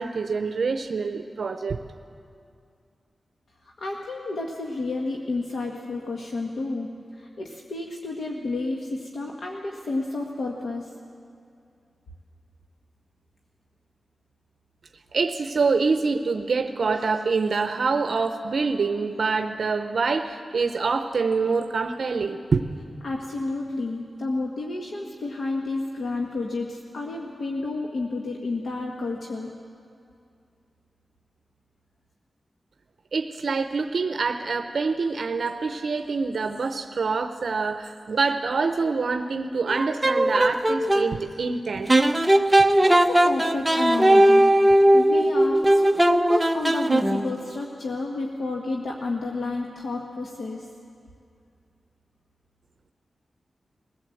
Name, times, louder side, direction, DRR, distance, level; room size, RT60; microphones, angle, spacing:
voice 1, 0.0-1.8 15.1-22.6 33.1-41.9, right 4 dB, 65° right, 7 dB, 0.7 m, -25 dB
voice 2, 3.6-10.9 23.0-29.5 42.8-44.4 44.9-50.7, left 2 dB, 70° left, 0 dB, 1.4 m, -31 dB
sound 1, 39.7-41.1 41.9-47.4, right 1 dB, 15° right, 0.7 m, -18 dB
21.5 x 16.0 x 7.8 m, 2.4 s
wide cardioid pair, 110°, 0 cm